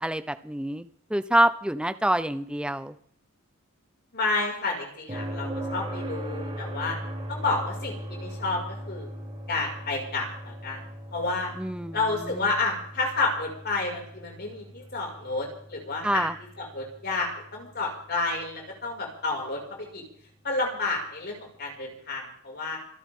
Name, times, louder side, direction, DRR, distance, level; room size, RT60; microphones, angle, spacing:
voice 1, 0.0-2.9 11.6-12.5 16.0-16.3, right 1 dB, 5° right, 11 dB, 0.7 m, -27 dB
voice 2, 4.1-7.0 7.3-9.1 9.5-10.8 11.1-11.5 11.9-16.3 16.6-19.6 19.9-20.0 20.4-22.8, left 3 dB, 50° left, -1 dB, 6.1 m, -30 dB
sound 1, 5.1-18.9 21.2-21.3, equal, 25° right, 6.9 m, -39 dB
27.0 x 13.5 x 3.8 m, 0.62 s
head